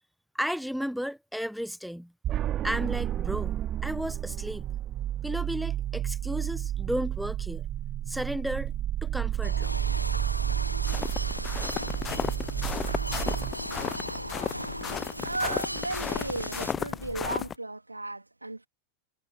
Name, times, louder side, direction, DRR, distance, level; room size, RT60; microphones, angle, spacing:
voice 1, 0.3-2.1 2.6-4.6 5.2-7.6 8.1-8.7 9.0-9.7, equal, ahead, 1.3 m, -33 dB
sound 1, 2.2-13.5, right 11 dB, 30° right, 0.5 m, -31 dB
sound 2, 9.4-16.7, equal, 90° left, 0.9 m, -37 dB
sound 3, 10.9-17.5, left 7 dB, 20° left, 0.6 m, -34 dB
voice 2, 15.2-18.7, right 2 dB, 85° right, 3.1 m, -35 dB
figure-of-eight pair, 90°, 0 cm